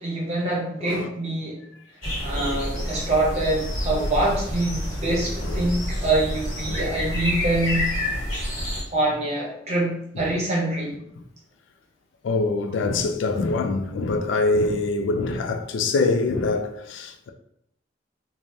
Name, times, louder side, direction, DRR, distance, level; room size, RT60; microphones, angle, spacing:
voice 1, 0.0-1.6 2.2-7.9 8.9-10.9, right 2 dB, 35° right, 0.8 m, -25 dB
voice 2, 0.8-1.1 2.3-2.9 3.9-4.3 5.4-5.7 6.7-7.0 8.1-8.4 10.1-10.2 12.2-17.3, left 3 dB, 75° left, 0.3 m, -25 dB
sound 1, 2.0-8.8, equal, 45° left, 1.1 m, -28 dB
3.3 x 2.1 x 2.6 m
head